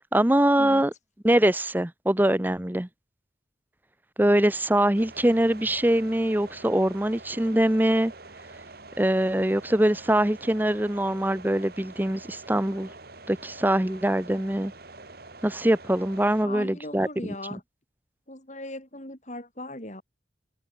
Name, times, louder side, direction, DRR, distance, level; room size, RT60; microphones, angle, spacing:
voice 1, 0.1-0.9 1.2-2.9 4.2-8.1 9.0-12.9 13.3-14.7 15.4-17.1, right 1 dB, 10° right, 0.7 m, -23 dB
sound 1, 4.9-16.4, right 3 dB, 50° right, 2.7 m, -46 dB
voice 2, 16.4-17.6 18.3-20.0, left 1 dB, 40° left, 6.7 m, -38 dB
head